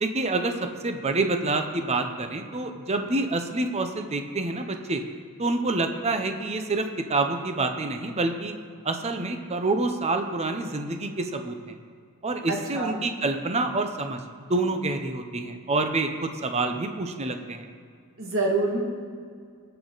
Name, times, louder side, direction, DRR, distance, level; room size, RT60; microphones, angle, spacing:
voice 1, 0.0-5.0 5.4-8.5 8.8-11.8 12.2-14.2 14.5-17.7, right 2 dB, 30° right, 6 dB, 0.7 m, -27 dB
voice 2, 12.5-13.0 18.2-18.8, right 2 dB, 60° right, -2 dB, 2.2 m, -26 dB
20.5 x 6.9 x 4.0 m, 2.2 s
head